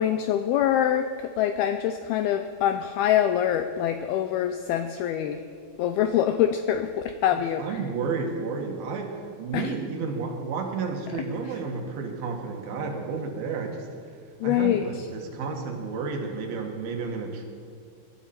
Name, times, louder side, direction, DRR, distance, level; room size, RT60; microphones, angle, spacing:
voice 1, 0.0-5.4 5.8-7.8 9.5-9.7 14.4-14.8, left 10 dB, 90° left, 8 dB, 2.2 m, -25 dB
voice 2, 7.3-13.9 14.4-17.4, right 4 dB, 65° right, 2 dB, 3.2 m, -31 dB
22.0 x 13.0 x 4.3 m, 2.2 s
omnidirectional pair, 5.0 m